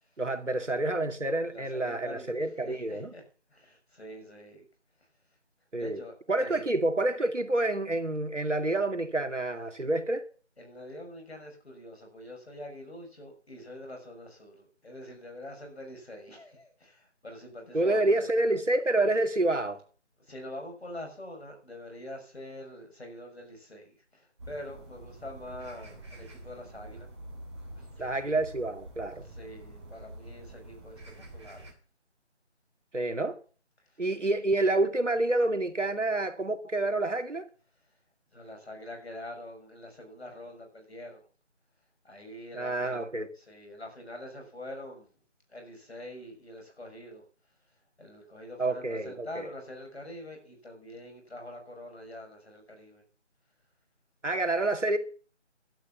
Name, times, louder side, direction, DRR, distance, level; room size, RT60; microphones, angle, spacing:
voice 1, 0.2-3.1 5.7-6.0 6.3-10.2 17.7-19.8 28.0-29.3 32.9-33.4 34.0-37.5 42.5-43.3 48.6-49.5 54.2-55.0, right 2 dB, 80° right, 2.6 m, -28 dB
voice 2, 1.4-3.2 3.5-4.6 5.8-6.8 10.6-18.3 20.2-27.1 27.8-28.2 29.2-31.7 33.8-34.0 38.3-41.3 42.0-43.0 43.4-45.1 45.5-47.2 48.0-53.0, left 1 dB, 60° left, 6.5 m, -45 dB
sound 1, 24.4-31.7, right 1 dB, 25° right, 2.9 m, -47 dB
12.0 x 9.8 x 7.2 m
figure-of-eight pair, 170°, 36 cm